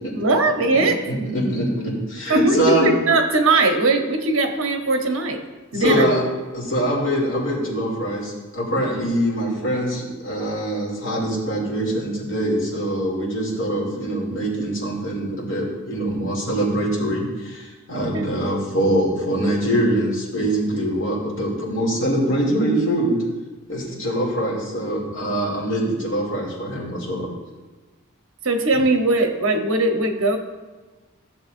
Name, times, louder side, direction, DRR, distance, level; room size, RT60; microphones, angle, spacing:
voice 1, 0.1-1.0 2.3-2.6 2.8-5.4 5.7-6.1 18.1-18.3 28.4-30.4, right 2 dB, 65° right, 4 dB, 1.0 m, -20 dB
voice 2, 1.1-2.9 5.7-6.3 6.5-23.2 23.7-27.3, right 1 dB, 60° left, -4 dB, 2.7 m, -23 dB
14.0 x 7.0 x 2.6 m, 1.3 s
head